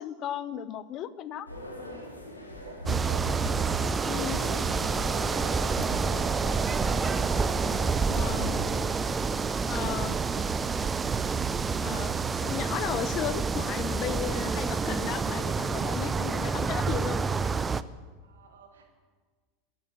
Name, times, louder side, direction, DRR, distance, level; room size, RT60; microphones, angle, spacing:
voice 1, 0.0-1.5 4.1-4.4 8.1-8.6 9.7-10.2 11.8-12.2 12.4-17.2, left 11 dB, 40° left, 16 dB, 0.7 m, -35 dB
sound 1, 1.5-8.8, left 1 dB, 90° left, 2.3 m, -40 dB
voice 2, 2.6-7.4 7.7-11.2 18.2-18.9, right 5 dB, 75° right, 2 dB, 3.0 m, -50 dB
sound 2, 2.9-17.8, right 5 dB, 20° right, 0.6 m, -28 dB
13.5 x 8.8 x 9.7 m, 1.4 s
figure-of-eight pair, 85°, 0 cm